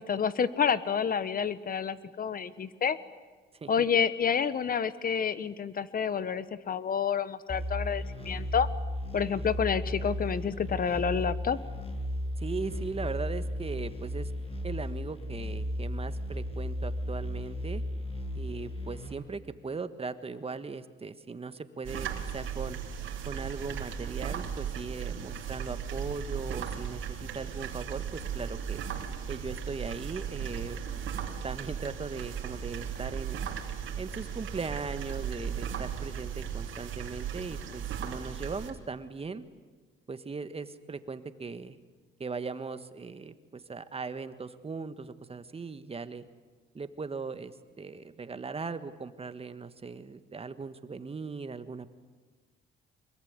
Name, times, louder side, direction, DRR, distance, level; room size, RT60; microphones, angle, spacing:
voice 1, 0.0-3.0 3.7-8.7 9.1-11.6, left 7 dB, 45° left, 15 dB, 1.3 m, -29 dB
sound 1, 7.5-19.1, left 1 dB, 30° left, 6.8 m, -35 dB
voice 2, 12.4-14.3 14.6-17.8 18.3-22.8 23.2-28.8 29.3-30.8 31.4-33.4 34.0-39.4 40.1-41.8 42.2-46.3 46.7-51.9, right 4 dB, 30° right, 11 dB, 1.6 m, -39 dB
sound 2, 21.8-38.7, right 8 dB, 80° right, 3.2 m, -36 dB
24.0 x 22.0 x 9.7 m, 1.4 s
cardioid pair, 90°, 20 cm